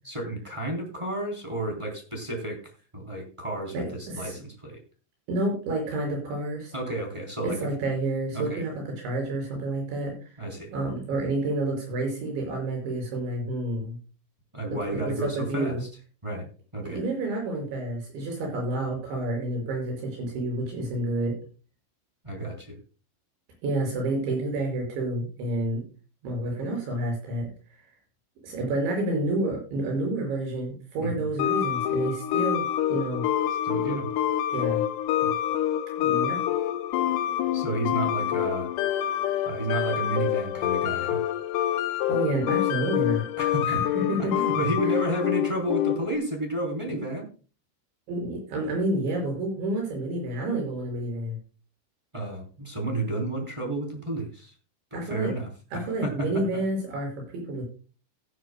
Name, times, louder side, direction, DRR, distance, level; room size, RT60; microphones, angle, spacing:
voice 1, 0.0-2.6 2.9-4.8 6.7-7.6 8.3-8.6 10.4-10.7 14.5-15.9 16.2-16.5 16.7-17.0 22.2-22.7 31.0-31.3 33.6-34.1 35.2-35.3 37.5-38.7 39.5-41.2 43.4-43.8 44.2-47.3 52.1-54.5 54.9-56.4, right 1 dB, 10° right, 2 dB, 2.4 m, -31 dB
voice 2, 3.7-4.3 5.3-6.7 7.4-10.2 10.7-14.0 14.9-15.8 16.8-21.4 23.6-25.8 26.2-27.5 28.4-33.2 34.5-34.8 36.0-36.4 42.1-43.3 43.7-44.3 48.1-51.4 54.9-55.3 55.7-57.6, right 1 dB, 80° right, 0 dB, 7.9 m, -29 dB
sound 1, 31.4-46.1, left 11 dB, 80° left, 2.2 m, -27 dB
17.0 x 10.5 x 2.2 m, 0.36 s
omnidirectional pair, 5.3 m